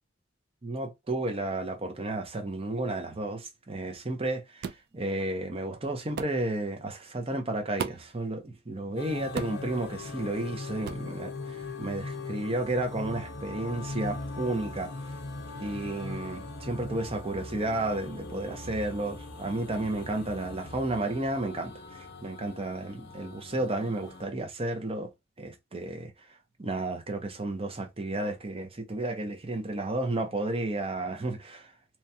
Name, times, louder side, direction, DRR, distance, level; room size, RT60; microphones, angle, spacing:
voice 1, 0.6-4.7 4.9-14.9 15.6-25.1 25.4-26.1 26.6-31.7, right 2 dB, 30° right, 0.7 m, -32 dB
sound 1, 4.6-4.9 6.2-6.4 7.8-8.2 9.4-9.7 10.8-11.1, right 6 dB, 55° right, 0.3 m, -35 dB
sound 2, 9.0-24.3, left 3 dB, 60° left, 0.7 m, -40 dB
3.0 x 2.3 x 2.7 m
head